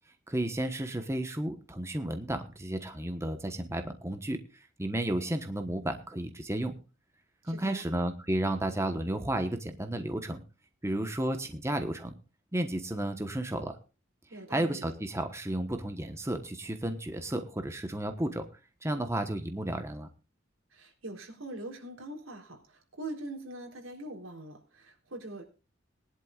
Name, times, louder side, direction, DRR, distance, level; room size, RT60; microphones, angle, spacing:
voice 1, 0.3-4.4 4.8-6.7 7.4-10.4 10.8-12.1 12.5-13.8 14.5-18.5 18.8-20.1, right 1 dB, 15° right, 6 dB, 1.2 m, -32 dB
voice 2, 7.5-7.8 14.3-14.9 20.7-25.4, right 1 dB, 85° right, 2 dB, 3.8 m, -43 dB
21.0 x 11.0 x 2.5 m, 0.33 s
head